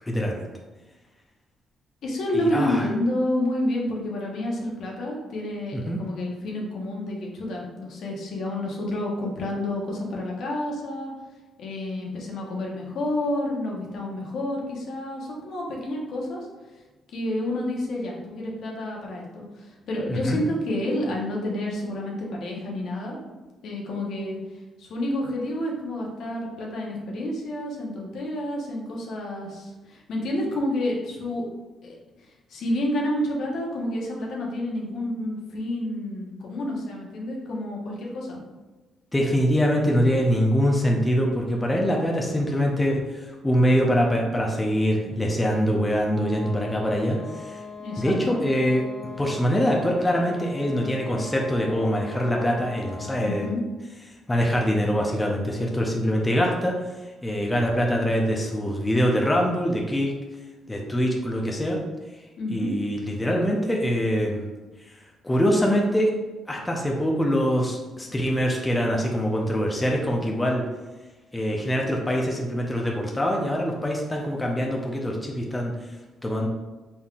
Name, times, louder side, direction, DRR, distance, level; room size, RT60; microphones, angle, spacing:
voice 1, 0.1-0.5 2.3-2.9 5.7-6.0 20.1-20.4 39.1-47.6 48.0-48.8 49.2-53.5 54.3-56.7 57.2-60.1 60.7-61.8 62.5-64.5 65.2-66.1 66.5-70.6 71.3-75.7 76.2-76.5, equal, 15° left, -1 dB, 0.6 m, -24 dB
voice 2, 2.0-11.1 11.6-16.5 17.1-23.2 23.6-24.4 24.8-31.4 31.8-32.0 32.5-38.4 47.8-48.4 53.2-53.6 62.4-62.7, left 1 dB, 70° left, -2 dB, 1.0 m, -29 dB
sound 1, 46.0-53.7, left 3 dB, 35° left, 1.2 m, -40 dB
4.2 x 3.6 x 2.4 m, 1.2 s
cardioid pair, 90°, 0 cm